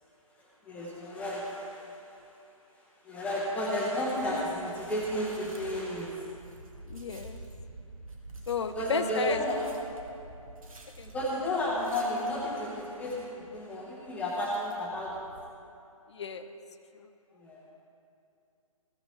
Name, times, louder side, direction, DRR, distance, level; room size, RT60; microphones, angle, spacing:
voice 1, 0.4-2.3 3.0-6.3 8.7-9.6 11.0-15.3 17.4-17.6, left 1 dB, 5° left, -5 dB, 1.0 m, -32 dB
sound 1, 4.1-15.5, right 2 dB, 70° right, 1.5 m, -49 dB
voice 2, 6.9-7.4 8.5-9.4 11.0-11.1 16.1-16.6 17.0-17.1, left 6 dB, 50° left, 10 dB, 0.6 m, -33 dB
14.5 x 5.9 x 4.2 m, 2.6 s
figure-of-eight pair, 140°, 18 cm